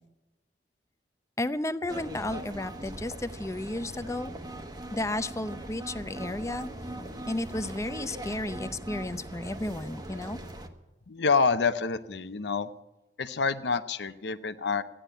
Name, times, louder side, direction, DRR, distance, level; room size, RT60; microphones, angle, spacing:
voice 1, 1.4-4.3 4.9-6.7 7.3-10.4, left 1 dB, 15° left, 12 dB, 0.6 m, -33 dB
sound 1, 1.9-10.7, right 1 dB, 25° right, 1.2 m, -40 dB
voice 2, 11.1-12.7 13.2-14.8, left 5 dB, 75° left, 11 dB, 0.7 m, -27 dB
14.5 x 10.0 x 9.0 m, 1.0 s
head